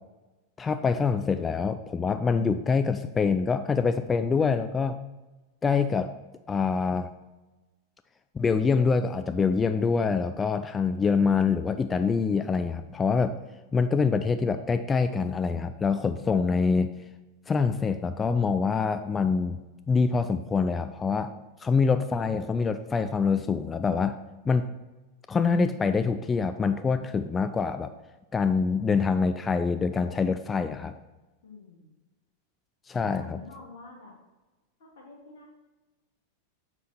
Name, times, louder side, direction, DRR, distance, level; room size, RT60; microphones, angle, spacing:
voice 1, 0.6-5.0 5.6-6.1 6.5-7.1 8.3-13.3 13.7-16.9 17.5-19.6 19.9-21.3 21.6-24.2 24.5-24.7 25.3-27.9 28.3-30.9 32.9-33.4, left 5 dB, 15° left, 10 dB, 0.3 m, -25 dB
voice 2, 31.4-32.0 33.1-34.1 34.8-35.5, left 3 dB, 55° left, -3 dB, 2.6 m, -48 dB
7.3 x 6.1 x 4.3 m, 1.1 s
figure-of-eight pair, 90°, 0 cm